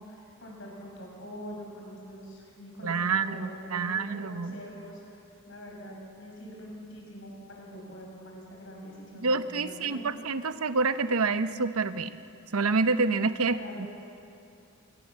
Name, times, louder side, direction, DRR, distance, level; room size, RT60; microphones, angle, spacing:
voice 1, 0.0-10.1 13.5-13.9, equal, 60° left, -1 dB, 7.2 m, -44 dB
voice 2, 2.8-4.6 9.2-12.1 12.5-13.9, right 4 dB, 85° right, 11 dB, 0.9 m, -27 dB
24.5 x 23.5 x 7.5 m, 2.7 s
head